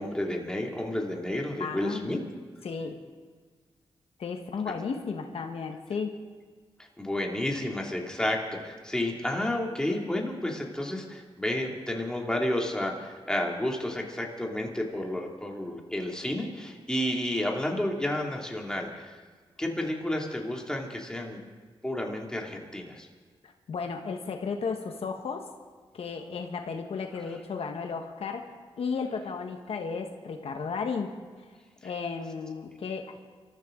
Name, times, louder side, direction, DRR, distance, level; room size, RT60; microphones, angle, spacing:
voice 1, 0.0-2.2 7.0-19.2 19.6-21.4 21.8-23.1, left 1 dB, 5° left, 0 dB, 2.7 m, -31 dB
voice 2, 1.6-2.1 2.6-3.0 4.2-6.1 23.4-25.5 25.9-28.5 28.8-31.1 31.8-33.1, left 5 dB, 70° left, 4 dB, 1.4 m, -34 dB
27.0 x 14.0 x 3.9 m, 1.5 s
cardioid pair, 85°, 10 cm